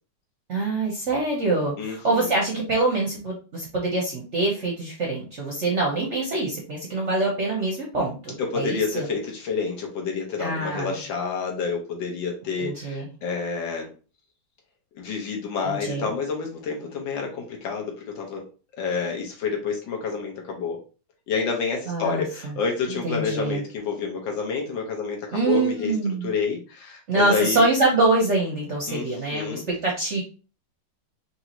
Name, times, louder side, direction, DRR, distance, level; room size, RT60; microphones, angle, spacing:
voice 1, 0.5-9.1 10.4-11.0 12.6-13.1 15.6-16.1 21.9-22.5 23.0-23.6 25.3-26.3 27.1-30.2, right 2 dB, 50° right, -2 dB, 0.8 m, -25 dB
voice 2, 1.8-2.3 8.4-13.9 15.0-18.4 18.8-20.8 21.3-25.9 26.2-27.6 28.9-29.0 29.3-29.7, left 5 dB, 70° left, 1 dB, 1.6 m, -29 dB
4.6 x 2.7 x 2.9 m, 0.35 s
omnidirectional pair, 2.2 m